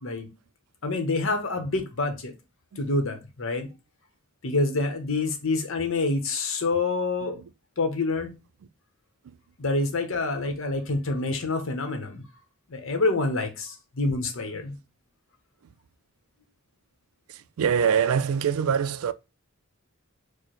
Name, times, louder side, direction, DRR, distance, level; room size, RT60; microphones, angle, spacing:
voice 1, 0.8-2.3 2.8-3.7 4.4-7.4 7.8-8.3 9.6-12.2 12.7-14.8, left 3 dB, 65° left, 0.9 m, -27 dB
voice 2, 17.3-19.1, right 7 dB, 75° right, 0.3 m, -25 dB
4.6 x 2.1 x 3.0 m
head